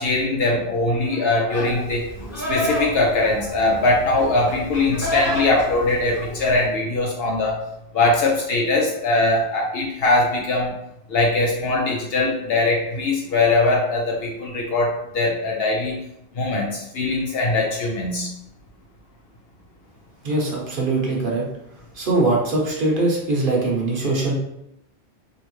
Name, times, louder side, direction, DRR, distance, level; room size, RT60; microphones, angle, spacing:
voice 1, 0.0-2.1 2.5-7.6 7.9-10.7 11.1-16.0 16.3-18.3, left 2 dB, 65° left, -1 dB, 0.8 m, -21 dB
Livestock farm animals working animals, 1.5-6.7, left 1 dB, 15° left, 0.9 m, -29 dB
voice 2, 20.2-21.4 21.9-24.3, right 2 dB, 55° right, -2 dB, 0.9 m, -22 dB
3.1 x 2.7 x 3.0 m, 0.82 s
omnidirectional pair, 1.1 m